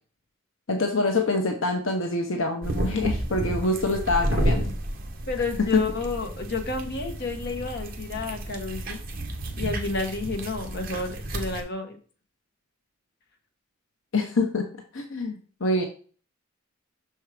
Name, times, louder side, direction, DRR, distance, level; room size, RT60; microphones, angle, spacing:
voice 1, 0.7-4.7 5.7-5.8 14.1-15.8, left 2 dB, 75° left, 4 dB, 1.0 m, -26 dB
sound 1, 2.6-11.6, right 1 dB, 45° right, 1.3 m, -31 dB
voice 2, 5.3-9.0 9.6-12.0, left 3 dB, 55° left, 4 dB, 1.3 m, -31 dB
6.3 x 4.6 x 5.0 m, 0.40 s
head